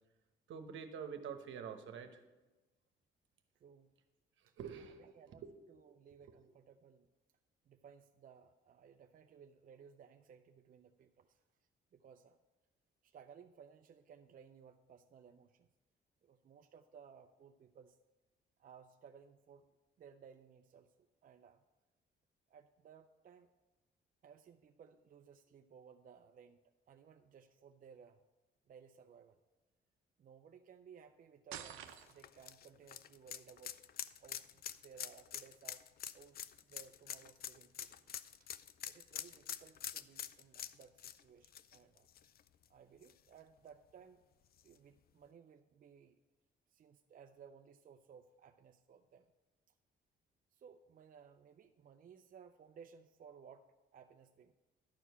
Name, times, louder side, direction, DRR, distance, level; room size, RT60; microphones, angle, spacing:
voice 1, 0.5-2.2 4.6-5.5 6.2-6.3, right 7 dB, 75° right, 7 dB, 1.0 m, -47 dB
voice 2, 3.5-3.9 4.5-4.6 4.8-5.4 5.7-7.1 7.7-11.4 11.9-12.4 13.0-15.7 16.2-18.0 18.6-21.6 22.5-23.5 24.2-26.6 26.9-28.2 28.7-29.4 30.2-33.9 34.2-35.8 36.1-38.1 38.4-38.5 38.8-42.1 42.7-44.2 44.6-46.2 46.7-49.3 50.5-54.5, right 7 dB, 45° right, 6 dB, 0.5 m, -60 dB
sound 1, 31.5-32.4, right 10 dB, 90° right, 0.7 m, -48 dB
sound 2, 31.9-42.6 43.0-43.1 44.6-44.7, left 10 dB, 50° left, 0.4 m, -46 dB
11.0 x 4.7 x 6.8 m, 1.1 s
cardioid pair, 90°, 20 cm